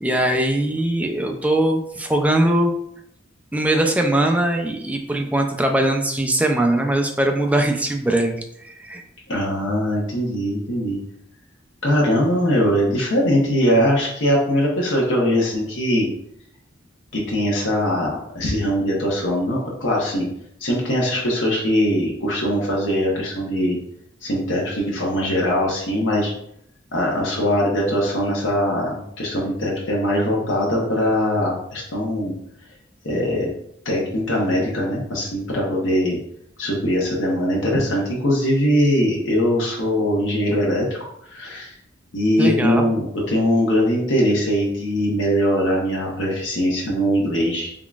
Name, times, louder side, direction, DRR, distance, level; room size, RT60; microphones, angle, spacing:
voice 1, 0.0-2.7 3.5-9.0 42.4-42.9, right 1 dB, 10° right, 3 dB, 0.4 m, -21 dB
voice 2, 9.3-11.0 11.8-16.1 17.1-20.3 20.6-23.8 24.2-26.3 26.9-32.4 33.0-33.5 33.8-36.2 36.6-40.9 41.3-41.7 42.1-47.7, equal, 80° left, -4 dB, 0.9 m, -21 dB
3.7 x 3.5 x 2.4 m, 0.73 s
head